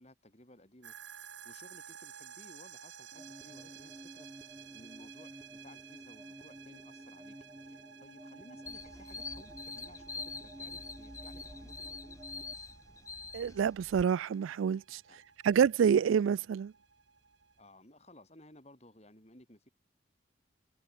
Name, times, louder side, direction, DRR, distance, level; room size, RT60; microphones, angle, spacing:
voice 1, 0.0-12.2 15.1-15.3 17.6-19.7, left 1 dB, 35° left, 5.8 m, -58 dB
sound 1, 0.8-17.6, right 7 dB, 75° right, 1.7 m, -54 dB
Pondering Something You're Unsure In a Dream, 3.1-12.5, right 1 dB, 10° right, 0.6 m, -52 dB
sound 2, 8.7-14.0, left 4 dB, 15° left, 1.6 m, -45 dB
voice 2, 13.3-15.0 15.4-16.7, right 7 dB, 90° right, 0.3 m, -27 dB
head